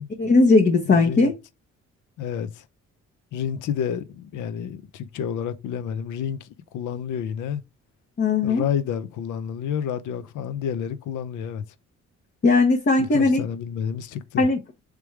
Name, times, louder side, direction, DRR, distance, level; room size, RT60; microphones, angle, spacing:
voice 1, 0.2-1.3 8.2-8.7 12.4-13.4 14.4-14.6, left 3 dB, 35° left, 1.0 m, -18 dB
voice 2, 0.9-1.3 2.2-2.6 3.3-6.5 6.7-7.6 8.4-11.6 13.0-14.5, left 8 dB, 80° left, 0.7 m, -30 dB
3.4 x 3.3 x 4.5 m
cardioid pair, 90°, 30 cm